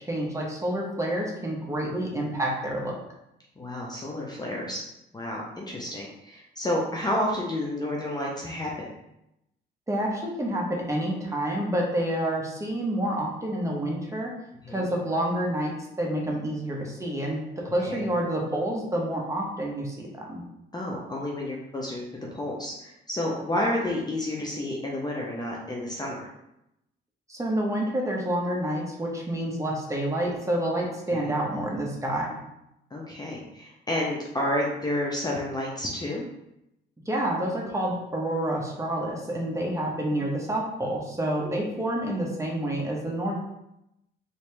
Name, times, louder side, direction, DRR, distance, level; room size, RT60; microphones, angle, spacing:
voice 1, 0.1-2.9 9.9-14.3 14.7-20.4 27.3-32.3 37.1-43.4, right 1 dB, 15° right, -2 dB, 0.9 m, -28 dB
voice 2, 3.6-4.8 5.1-8.9 14.6-14.9 17.9-18.1 20.7-26.3 31.1-31.3 32.9-36.2 41.4-41.6, left 1 dB, 20° left, -3 dB, 0.6 m, -30 dB
3.0 x 2.8 x 3.3 m, 0.85 s
cardioid pair, 90°, 20 cm